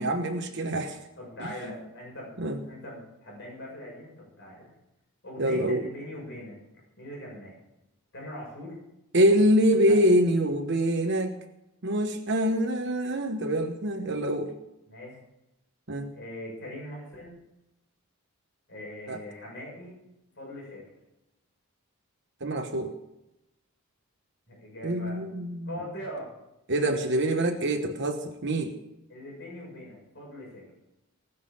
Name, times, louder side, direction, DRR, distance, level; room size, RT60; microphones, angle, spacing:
voice 1, 0.0-1.0 2.4-2.6 5.4-5.8 9.1-11.4 11.8-14.5 15.9-16.1 19.1-19.2 22.4-22.9 24.8-25.8 26.7-28.7, equal, 55° right, 5 dB, 1.1 m, -25 dB
voice 2, 1.2-4.7 5.2-6.6 7.0-7.6 8.1-8.8 9.9-10.0 14.9-15.2 16.1-17.3 18.7-20.0 20.4-20.8 24.5-25.2 25.6-26.3 29.1-30.6, left 1 dB, 50° left, -2 dB, 6.8 m, -41 dB
19.0 x 7.2 x 7.0 m, 0.91 s
head